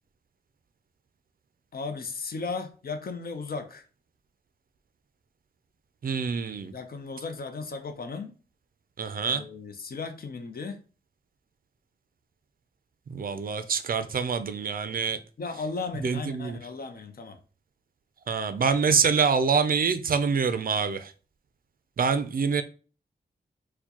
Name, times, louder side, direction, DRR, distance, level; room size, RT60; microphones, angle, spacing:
voice 1, 1.7-3.8 6.7-8.3 9.3-10.8 15.4-17.4, left 4 dB, 55° left, 0.5 m, -35 dB
voice 2, 6.0-6.7 9.0-9.4 13.1-15.2 16.0-16.6 18.3-21.1 22.0-22.6, right 5 dB, 55° right, 0.4 m, -25 dB
4.4 x 2.2 x 2.8 m
wide cardioid pair, 95°, 18 cm